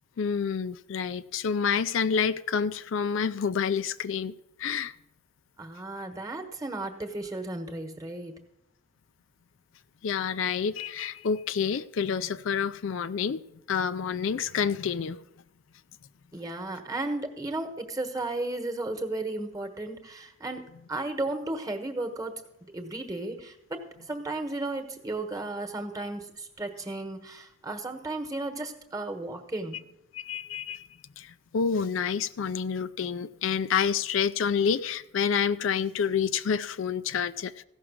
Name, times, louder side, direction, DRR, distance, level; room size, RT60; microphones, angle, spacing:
voice 1, 0.2-4.3 4.6-4.9 10.0-15.2 30.1-30.8 31.2-37.6, left 6 dB, 70° left, 0.4 m, -28 dB
voice 2, 5.6-8.3 16.3-20.6 20.9-22.3 22.7-23.8 24.1-29.8, right 2 dB, 15° right, 1.2 m, -34 dB
15.5 x 6.0 x 6.2 m
head